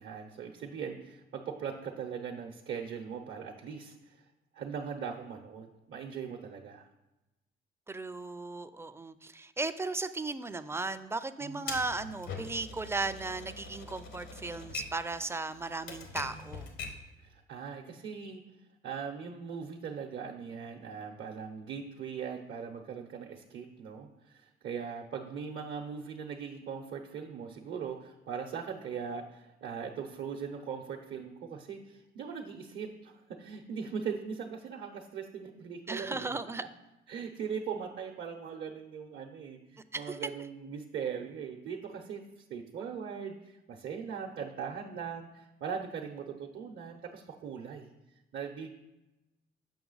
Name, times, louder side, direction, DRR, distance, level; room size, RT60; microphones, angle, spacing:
voice 1, 0.0-4.2 4.5-6.9 11.4-11.8 17.2-18.4 18.8-36.4 37.1-42.2 42.5-47.9 48.3-48.7, right 6 dB, 70° right, 1 dB, 0.7 m, -40 dB
voice 2, 7.9-16.7 35.9-36.6 39.9-40.2, right 3 dB, 15° right, 12 dB, 0.4 m, -36 dB
Typewriter, 11.7-17.1, left 4 dB, 85° left, 1.2 m, -43 dB
7.1 x 5.6 x 3.9 m, 0.98 s
cardioid pair, 90°, 20 cm